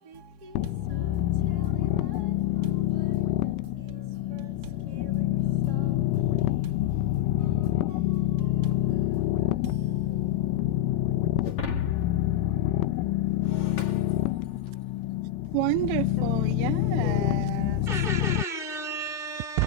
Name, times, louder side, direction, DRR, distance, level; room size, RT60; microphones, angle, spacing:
voice 1, 0.0-12.7 14.7-14.9, right 4 dB, 35° right, 1.6 m, -48 dB
sound 1, 0.6-18.4, left 15 dB, 85° left, 3.5 m, -27 dB
Shatter, 11.4-14.9, left 4 dB, 35° left, 4.8 m, -39 dB
voice 2, 15.5-17.8 19.5-19.6, right 23 dB, 85° right, 3.1 m, -29 dB
voice 3, 16.2-17.4 17.9-19.6, right 3 dB, 15° left, 1.8 m, -35 dB
omnidirectional pair, 5.6 m